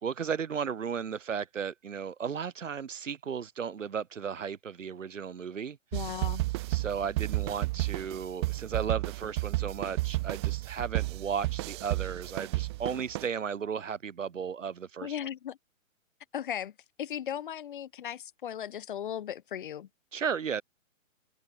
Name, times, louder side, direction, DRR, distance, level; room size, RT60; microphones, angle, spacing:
voice 1, 0.0-5.8 6.7-15.2 20.1-20.6, right 7 dB, 65° right, 5.4 m, -35 dB
voice 2, 5.9-6.4 15.0-15.6 16.3-16.7 17.0-19.9, left 10 dB, 35° left, 3.9 m, -36 dB
sound 1, 5.9-13.3, right 21 dB, 20° right, 2.4 m, -32 dB
open air
hypercardioid pair, 175°, 41 cm